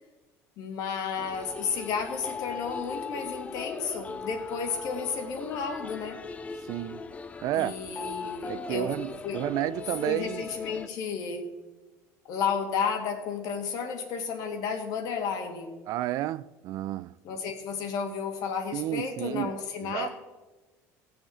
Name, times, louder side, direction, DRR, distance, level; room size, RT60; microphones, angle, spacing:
voice 1, 0.6-6.2 7.5-8.9 9.2-9.4 10.1-11.5 12.3-15.7 17.2-20.1, left 6 dB, 65° left, 2.1 m, -32 dB
sound 1, 1.2-10.9, left 4 dB, 20° left, 0.6 m, -39 dB
voice 2, 6.6-7.0 7.4-7.8 8.5-10.5 15.9-17.1 18.7-20.1, right 14 dB, 60° right, 0.3 m, -31 dB
17.5 x 6.9 x 4.3 m
cardioid pair, 120°, 7 cm